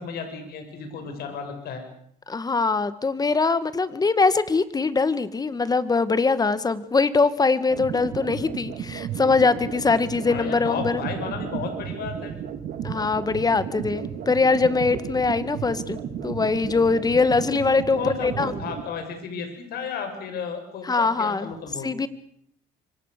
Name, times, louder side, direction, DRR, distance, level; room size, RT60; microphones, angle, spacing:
voice 1, 0.0-1.8 10.2-12.3 18.0-21.9, left 6 dB, 65° left, 6 dB, 6.6 m, -33 dB
voice 2, 2.3-11.0 12.8-18.5 20.8-21.5 21.8-22.1, left 4 dB, 20° left, 14 dB, 1.8 m, -22 dB
sound 1, 7.7-18.8, right 8 dB, 75° right, 4.6 m, -33 dB
26.5 x 24.5 x 6.7 m, 0.69 s
cardioid pair, 110°, 17 cm